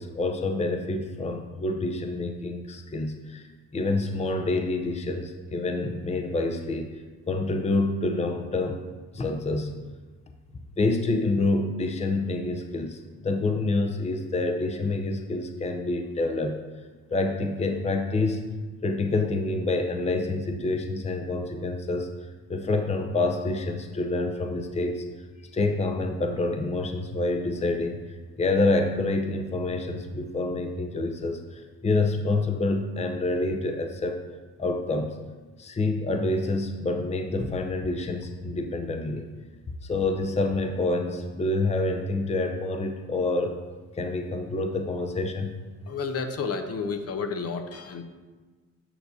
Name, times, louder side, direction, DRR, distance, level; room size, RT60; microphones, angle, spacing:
voice 1, 0.0-3.5 3.7-8.8 9.1-9.9 10.8-16.6 17.1-18.5 18.8-25.0 25.5-34.3 34.6-35.2 35.6-39.3 39.8-43.6 43.9-45.6, left 2 dB, 20° left, 5 dB, 0.6 m, -27 dB
voice 2, 45.9-48.0, left 5 dB, 55° left, 7 dB, 0.8 m, -31 dB
8.7 x 6.5 x 2.7 m, 1.4 s
cardioid pair, 90°, 30 cm